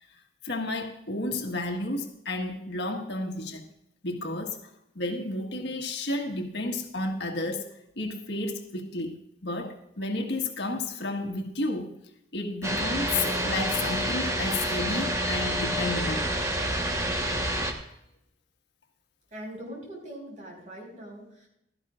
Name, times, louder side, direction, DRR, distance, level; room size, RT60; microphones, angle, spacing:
voice 1, 0.4-3.7 4.0-4.6 4.9-12.0 12.3-16.3, left 2 dB, 65° left, 1.6 m, -32 dB
sound 1, 12.6-17.7, equal, 15° right, 1.2 m, -28 dB
voice 2, 19.3-21.5, right 1 dB, 40° right, 5.0 m, -42 dB
16.0 x 13.0 x 2.5 m
head